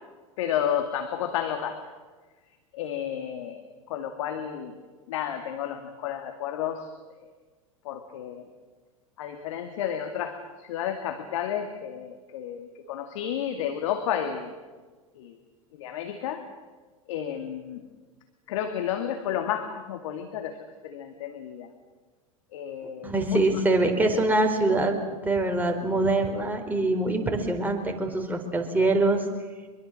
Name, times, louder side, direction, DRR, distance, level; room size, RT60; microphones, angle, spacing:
voice 1, 0.4-1.8 2.7-3.6 3.9-4.7 5.1-6.9 7.9-8.4 9.2-14.5 15.2-15.3 15.8-16.5 17.1-17.8 18.5-21.7 22.5-23.4, left 9 dB, 60° left, 7 dB, 2.2 m, -31 dB
voice 2, 23.0-25.0 25.2-29.2, right 2 dB, 10° right, 3 dB, 4.5 m, -24 dB
25.0 x 22.5 x 7.6 m, 1.3 s
figure-of-eight pair, 90°, 18 cm